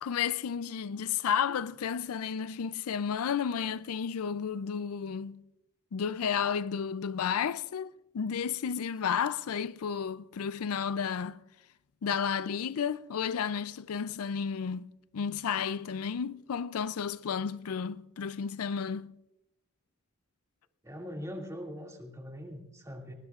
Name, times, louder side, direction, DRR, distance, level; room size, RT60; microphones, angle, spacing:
voice 1, 0.0-5.4 5.9-11.4 12.0-19.1, left 7 dB, 75° left, 0.4 m, -32 dB
voice 2, 20.8-23.1, equal, 15° right, 2.3 m, -41 dB
20.0 x 19.5 x 2.4 m
head